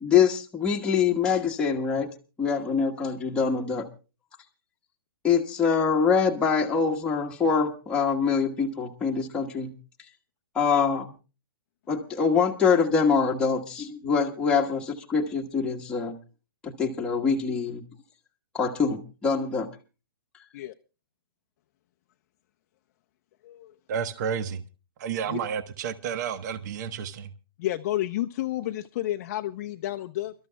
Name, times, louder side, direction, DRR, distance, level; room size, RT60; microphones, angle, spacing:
voice 1, 0.0-2.1 2.4-3.9 5.2-9.7 10.5-11.1 11.9-16.2 16.6-17.8 18.5-19.7, left 6 dB, 5° left, -2 dB, 1.3 m, -24 dB
voice 2, 23.9-24.6 25.0-27.3, right 7 dB, 45° right, 14 dB, 1.1 m, -31 dB
voice 3, 27.6-30.3, left 14 dB, 40° left, 5 dB, 0.6 m, -30 dB
28.5 x 13.0 x 2.2 m, 0.31 s
hypercardioid pair, 155°, 13 cm